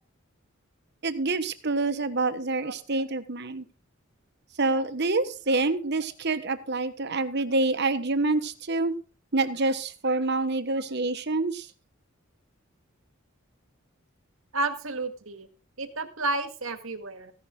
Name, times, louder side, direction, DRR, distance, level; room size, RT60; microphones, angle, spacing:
voice 1, 1.0-3.6 4.6-8.9 9.3-11.7, right 3 dB, 55° right, 10 dB, 1.3 m, -27 dB
voice 2, 2.6-3.1 14.5-15.5 15.8-17.3, right 3 dB, 80° right, 8 dB, 2.0 m, -32 dB
15.5 x 11.0 x 3.9 m, 0.35 s
head